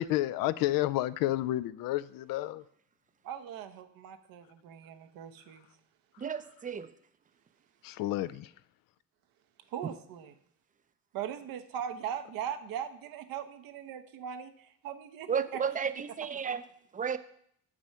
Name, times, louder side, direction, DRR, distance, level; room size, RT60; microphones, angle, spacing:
voice 1, 0.0-2.6 7.8-8.5, left 15 dB, 70° left, 16 dB, 0.5 m, -30 dB
voice 2, 3.2-5.7 9.7-10.3 11.1-15.6, right 9 dB, 70° right, 9 dB, 0.8 m, -40 dB
voice 3, 6.2-6.9 15.3-16.6 16.9-17.2, right 7 dB, 25° right, 12 dB, 0.5 m, -33 dB
6.2 x 6.2 x 5.6 m, 0.67 s
cardioid pair, 90°, 36 cm